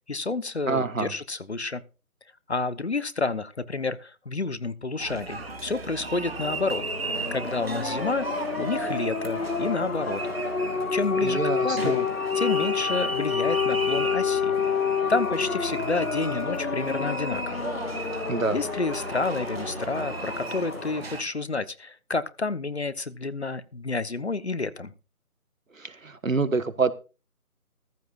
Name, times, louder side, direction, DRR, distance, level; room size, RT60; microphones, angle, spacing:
voice 1, 0.1-1.8 2.5-10.2 10.9-12.1 12.3-14.5 15.1-17.7 18.5-24.9, left 3 dB, 45° left, 15 dB, 1.1 m, -30 dB
voice 2, 0.7-1.1 11.2-12.0 18.3-18.6 25.7-26.9, right 4 dB, 60° right, 14 dB, 1.5 m, -26 dB
sound 1, 5.0-21.2, right 3 dB, 40° right, 2.5 m, -35 dB
sound 2, 6.2-21.0, left 6 dB, 65° left, 0.8 m, -29 dB
15.0 x 15.0 x 2.5 m, 0.32 s
figure-of-eight pair, 160°, 45 cm